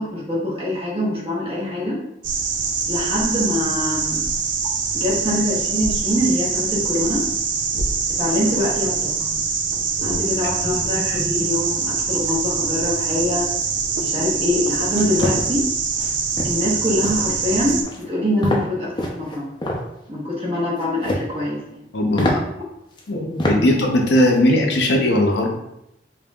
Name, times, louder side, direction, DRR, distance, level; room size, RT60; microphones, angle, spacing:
voice 1, 0.0-2.0 2.9-4.2 4.9-7.3 8.2-9.1 10.0-13.5 14.0-15.7 16.4-19.5 20.1-21.9 23.6-23.7, left 1 dB, 35° right, -5 dB, 1.0 m, -24 dB
sound 1, 2.2-17.8, right 5 dB, 90° right, 0.5 m, -24 dB
sound 2, 14.9-15.4 15.9-16.1 16.4-16.7 17.0-17.3 17.7-18.0 18.4-18.7 19.0-19.8 20.8-21.3 21.7-21.8 22.2-22.3 23.0-23.1 23.4-23.6 24.0-24.3, left 1 dB, 25° left, 0.5 m, -24 dB
voice 2, 21.9-22.4 23.1-25.6, left 1 dB, 75° left, 1 dB, 0.6 m, -19 dB
5.2 x 2.7 x 2.3 m, 0.83 s
head